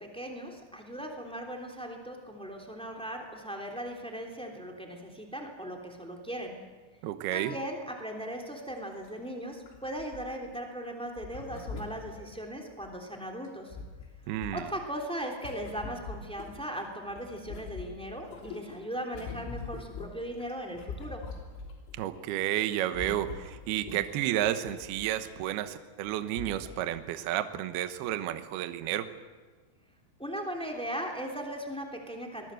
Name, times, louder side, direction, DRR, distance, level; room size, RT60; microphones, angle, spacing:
voice 1, 0.0-6.6 7.3-13.7 14.5-21.2 30.2-32.5, equal, ahead, 1 dB, 1.6 m, -38 dB
voice 2, 7.0-7.6 14.3-14.7 21.9-29.1, right 12 dB, 75° right, 10 dB, 2.3 m, -31 dB
sound 1, 8.6-8.7 9.0-9.1 9.6-10.6 11.2-12.9 13.4-16.8 17.1-21.9 22.2-22.5 22.7-25.4 26.1-26.2 26.4-26.8 27.3-27.4, left 4 dB, 90° left, 6.1 m, -43 dB
26.0 x 20.5 x 7.8 m, 1.4 s
omnidirectional pair, 6.0 m